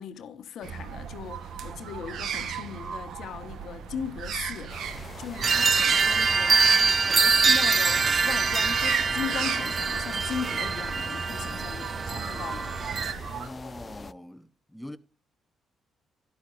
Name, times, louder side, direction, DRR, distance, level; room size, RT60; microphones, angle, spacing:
voice 1, 0.0-4.7 5.2-6.7 7.0-12.8, left 8 dB, 70° left, 1.0 m, -38 dB
sound 1, 0.6-13.5, right 7 dB, 75° right, 1.0 m, -35 dB
sound 2, 4.7-14.1, left 4 dB, 35° left, 0.4 m, -44 dB
sound 3, 5.4-13.1, right 5 dB, 40° right, 0.4 m, -24 dB
voice 2, 13.2-15.0, left 1 dB, 5° left, 0.7 m, -42 dB
12.5 x 11.0 x 2.5 m
cardioid pair, 90°, 0 cm